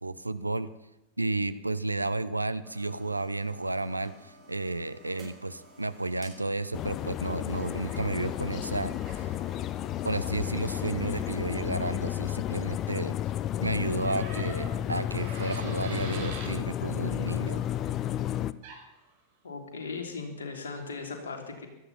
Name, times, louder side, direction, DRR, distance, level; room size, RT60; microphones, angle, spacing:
voice 1, 0.0-0.7 1.2-9.3 10.0-13.2 13.6-17.6, right 2 dB, 85° right, 13 dB, 0.7 m, -32 dB
sound 1, 2.6-11.5, right 1 dB, 20° right, 6.8 m, -53 dB
sound 2, 6.7-18.5, left 11 dB, 35° left, 0.6 m, -32 dB
sound 3, 14.0-16.5 18.6-18.8, right 4 dB, 50° right, 4.9 m, -42 dB
voice 2, 19.4-21.7, left 4 dB, 65° left, 3 dB, 3.1 m, -38 dB
17.0 x 13.0 x 5.7 m, 0.94 s
figure-of-eight pair, 90°, 0 cm